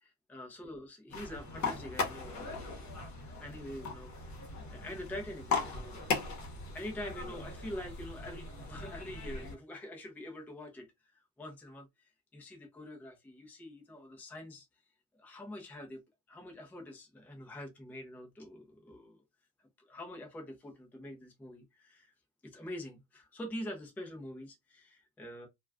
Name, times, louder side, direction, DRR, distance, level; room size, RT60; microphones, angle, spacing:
voice 1, 0.0-2.6 3.4-4.1 4.7-6.0 6.5-14.7 15.2-16.0 16.3-19.2 19.8-22.1 22.4-25.5, left 1 dB, 5° left, 0.4 m, -45 dB
sound 1, 1.1-9.5, left 4 dB, 35° left, 0.9 m, -38 dB
2.3 x 2.3 x 3.4 m
cardioid pair, 150°, 50 cm